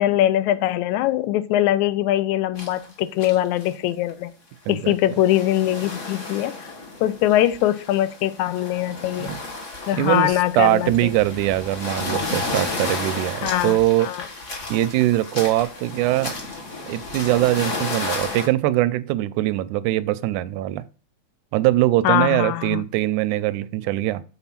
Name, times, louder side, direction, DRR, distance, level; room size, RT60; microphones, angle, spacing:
voice 1, 0.0-4.3 4.7-6.6 7.0-9.3 9.9-10.9 13.4-14.2 22.0-22.8, left 13 dB, 80° left, 1.9 m, -22 dB
sound 1, 2.6-2.9 3.2-3.7 4.1-4.2 4.9-18.5, left 3 dB, 40° left, 1.1 m, -32 dB
voice 2, 10.0-14.1 14.7-16.3 16.8-20.8 21.5-24.2, right 15 dB, 90° right, 2.0 m, -22 dB
6.9 x 4.2 x 5.7 m
omnidirectional pair, 3.4 m